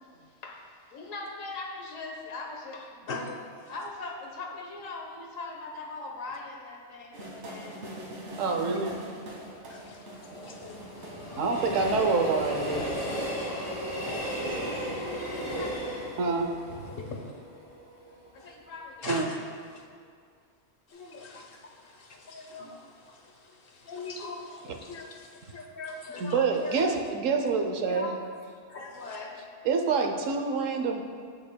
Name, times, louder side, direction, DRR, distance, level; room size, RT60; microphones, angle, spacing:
voice 1, 0.2-3.3 3.7-7.8 15.5-16.1 18.3-19.2 28.9-29.4, left 3 dB, 85° left, 1 dB, 1.5 m, -41 dB
sound 1, 7.1-14.8, right 1 dB, 60° right, 1.7 m, -44 dB
voice 2, 8.4-9.0 11.4-12.9 16.2-16.8 19.1-19.3 24.7-24.8 26.2-28.1 29.6-31.0, right 4 dB, 80° right, 4 dB, 1.1 m, -27 dB
Train, 9.2-18.3 18.7-18.8, equal, 30° left, 1.9 m, -35 dB
voice 3, 9.7-11.4 14.6-15.6 16.9-17.3 18.4-18.5 19.0-19.4 19.7-19.9 20.9-27.0 27.9-28.1 28.7-29.2, left 3 dB, 50° left, 2 dB, 0.9 m, -42 dB
17.0 x 5.7 x 2.2 m, 2.1 s
omnidirectional pair, 1.3 m